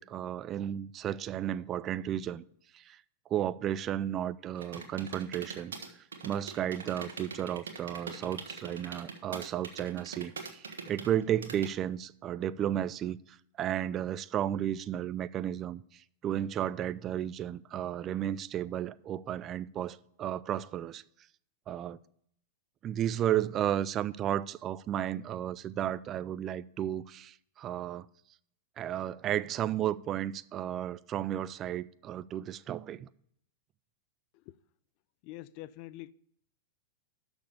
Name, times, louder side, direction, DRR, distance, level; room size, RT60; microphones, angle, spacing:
voice 1, 0.0-2.4 2.7-3.0 3.3-5.7 6.2-21.0 21.7-22.0 22.8-28.1 28.8-33.1, right 11 dB, 35° right, 0.4 m, -33 dB
sound 1, 4.5-11.7, right 5 dB, 90° right, 1.3 m, -42 dB
voice 2, 35.2-36.1, left 16 dB, 50° left, 0.4 m, -44 dB
6.6 x 6.1 x 7.0 m
hypercardioid pair, 115°, 0 cm